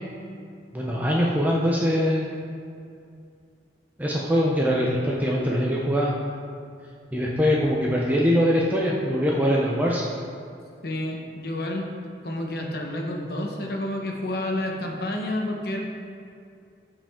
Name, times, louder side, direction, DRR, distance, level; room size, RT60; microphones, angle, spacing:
voice 1, 0.7-2.3 4.0-6.2 7.1-10.1, equal, 10° right, -4 dB, 0.7 m, -22 dB
voice 2, 10.8-11.9 12.2-15.8, left 1 dB, 60° left, 1 dB, 1.2 m, -29 dB
14.0 x 5.1 x 3.7 m, 2.4 s
head